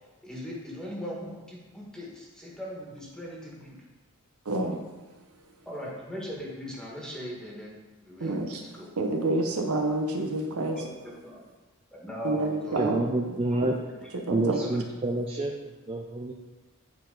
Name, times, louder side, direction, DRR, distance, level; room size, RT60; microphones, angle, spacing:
voice 1, 0.2-3.8 5.6-8.9 10.6-11.4 11.9-12.9 14.0-14.1 14.6-14.8, equal, 5° left, -4 dB, 1.6 m, -39 dB
voice 2, 4.5-4.8 8.2-8.6 9.0-10.8 12.2-13.0 14.1-14.6, right 2 dB, 75° right, 3 dB, 0.9 m, -28 dB
voice 3, 12.8-13.8 14.3-16.3, right 2 dB, 25° right, 1 dB, 0.5 m, -28 dB
9.0 x 4.3 x 3.9 m, 1.2 s
head